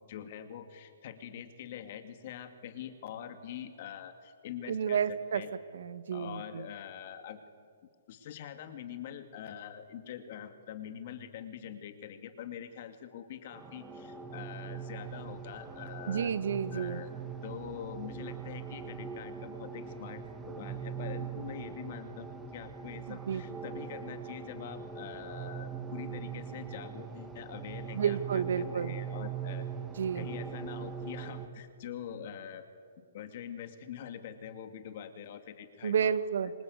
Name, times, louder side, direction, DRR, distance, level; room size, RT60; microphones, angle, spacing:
voice 1, 0.1-5.5 6.1-7.4 8.1-16.3 16.7-17.1 17.4-29.7 30.1-32.7 33.1-36.1, left 9 dB, 45° left, 8 dB, 2.5 m, -44 dB
voice 2, 4.7-5.4 5.7-6.7 16.1-17.0 23.1-23.4 27.9-29.0 30.0-30.3 35.8-36.5, right 7 dB, 70° right, 12 dB, 1.6 m, -31 dB
sound 1, 13.5-31.5, right 7 dB, 10° right, 1.6 m, -41 dB
27.5 x 24.5 x 8.1 m, 2.1 s
hypercardioid pair, 160°, 0 cm